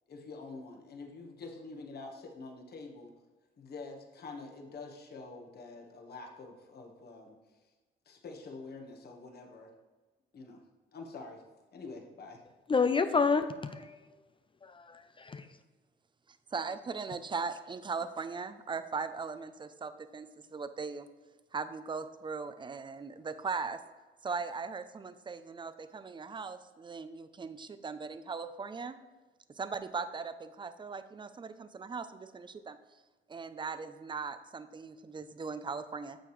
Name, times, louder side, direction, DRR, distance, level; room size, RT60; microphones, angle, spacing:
voice 1, 0.1-3.1 3.6-7.4 8.0-9.7 10.3-10.6 10.9-11.4 11.7-12.4, left 3 dB, 55° left, 2 dB, 1.4 m, -46 dB
voice 2, 12.7-14.0 14.6-15.5, left 5 dB, 25° left, 10 dB, 0.4 m, -29 dB
voice 3, 16.5-21.1 21.5-23.8 24.2-29.0 29.5-32.8 33.3-36.2, right 5 dB, 25° right, 11 dB, 0.5 m, -39 dB
9.1 x 6.7 x 3.2 m, 1.3 s
cardioid pair, 90°, 20 cm